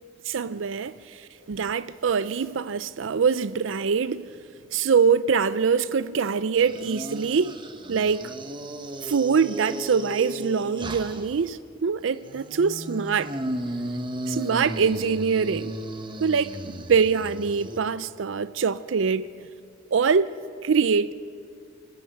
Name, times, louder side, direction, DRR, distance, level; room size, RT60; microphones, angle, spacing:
voice 1, 0.3-4.3 4.7-7.6 7.9-8.3 9.0-13.3 14.3-15.8 16.2-19.3 19.9-20.3 20.6-21.1, right 6 dB, 80° right, 0.5 m, -24 dB
sound 1, 6.6-11.4 12.2-17.8, right 1 dB, 25° right, 1.1 m, -35 dB
24.5 x 14.5 x 7.9 m
head